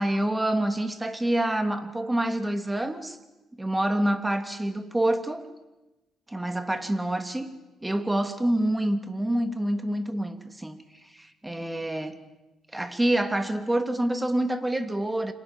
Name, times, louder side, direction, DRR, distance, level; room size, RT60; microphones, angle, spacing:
voice 1, 0.0-3.2 3.6-5.4 6.3-7.5 7.8-10.8 11.1-12.2 12.7-15.3, right 1 dB, 10° right, 8 dB, 2.9 m, -27 dB
30.0 x 26.0 x 7.4 m, 1.0 s
cardioid pair, 90°, 0 cm